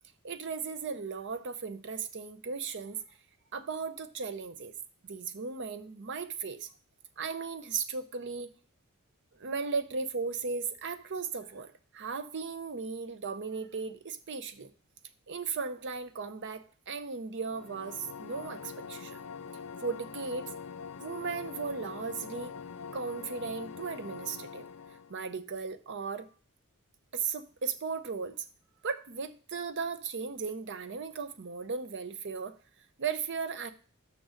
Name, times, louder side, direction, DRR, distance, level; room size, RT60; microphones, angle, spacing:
voice 1, 0.2-3.2 3.5-4.7 5.0-6.7 7.2-8.5 9.3-14.7 15.3-19.2 19.8-20.5 21.0-22.5 22.9-24.7 25.1-26.3 27.1-28.5 28.8-32.6 33.0-33.7, right 5 dB, 55° right, 11 dB, 0.6 m, -36 dB
sound 1, 17.4-25.2, left 6 dB, 70° left, 0.5 m, -44 dB
6.3 x 6.2 x 4.9 m, 0.40 s
head